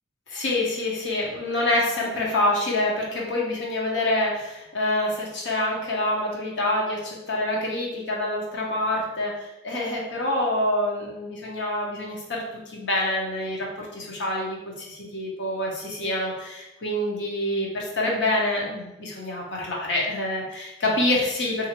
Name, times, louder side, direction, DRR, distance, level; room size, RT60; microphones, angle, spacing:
voice 1, 0.3-21.7, left 1 dB, 90° left, -2 dB, 1.0 m, -26 dB
3.6 x 2.7 x 3.0 m, 0.95 s
head